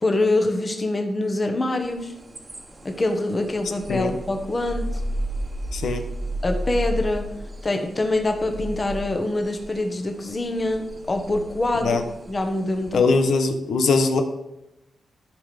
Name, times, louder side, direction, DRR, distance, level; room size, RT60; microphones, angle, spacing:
voice 1, 0.0-2.1 2.8-5.0 6.4-7.3 7.6-12.0 12.3-13.0, left 2 dB, 25° left, 5 dB, 1.3 m, -25 dB
sound 1, 1.8-13.2, right 1 dB, 25° right, 1.4 m, -34 dB
voice 2, 5.7-6.0 11.8-12.0 12.9-14.2, left 4 dB, 80° left, 6 dB, 1.2 m, -21 dB
13.5 x 6.0 x 5.2 m, 0.91 s
wide cardioid pair, 145°, 0 cm